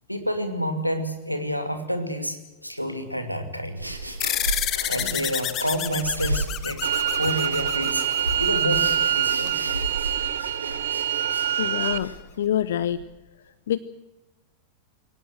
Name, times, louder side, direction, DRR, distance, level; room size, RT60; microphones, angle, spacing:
voice 1, 0.1-3.9 4.6-8.1 8.4-8.9 9.2-9.5, equal, 90° left, 6 dB, 2.6 m, -29 dB
sound 1, 3.8-13.0, right 1 dB, 85° right, 2.7 m, -34 dB
sound 2, 4.2-9.1, left 12 dB, 35° left, 1.1 m, -30 dB
sound 3, 6.8-12.0, right 11 dB, 60° right, 1.0 m, -25 dB
voice 2, 11.6-12.1 12.4-13.0 13.7-13.8, left 11 dB, 60° left, 17 dB, 0.7 m, -25 dB
23.5 x 18.0 x 7.7 m, 1.0 s
figure-of-eight pair, 90°, 0 cm